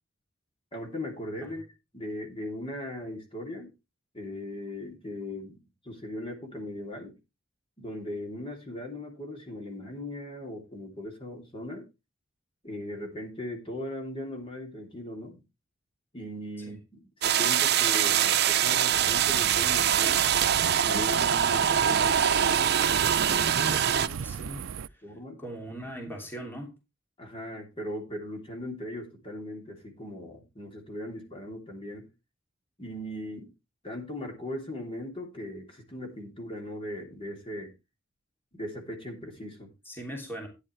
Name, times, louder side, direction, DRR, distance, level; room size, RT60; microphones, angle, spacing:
voice 1, 0.7-1.7 1.9-3.7 4.1-5.6 5.8-7.2 7.8-11.9 12.6-15.4 16.1-20.3 20.8-23.8 24.4-24.5 25.0-25.4 27.2-32.1 32.8-33.5 33.8-37.7 38.5-39.7, left 1 dB, 30° left, 3.1 m, -38 dB
sound 1, 17.2-24.1, right 9 dB, 55° right, 0.7 m, -24 dB
sound 2, 18.9-24.9, right 7 dB, 90° right, 0.5 m, -38 dB
voice 2, 23.6-26.7 39.8-40.5, right 1 dB, 10° left, 2.9 m, -41 dB
13.0 x 10.0 x 3.3 m
head